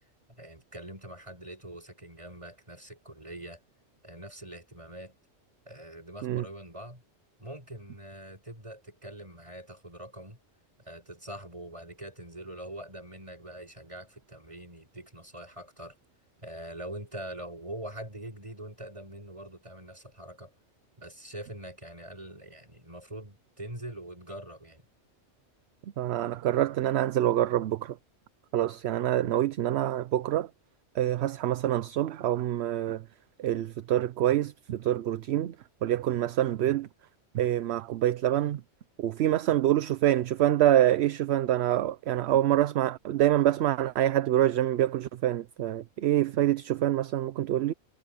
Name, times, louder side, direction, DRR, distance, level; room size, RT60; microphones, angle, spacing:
voice 1, 0.4-3.6 4.0-5.2 5.7-7.0 7.4-10.4 10.8-16.0 16.4-20.5 21.0-24.8, right 1 dB, 25° right, 7.7 m, -43 dB
voice 2, 26.0-28.0 28.5-30.5 31.0-33.0 33.4-35.5 35.8-36.9 37.3-38.6 39.0-47.7, right 12 dB, 70° right, 0.8 m, -26 dB
omnidirectional pair, 1.2 m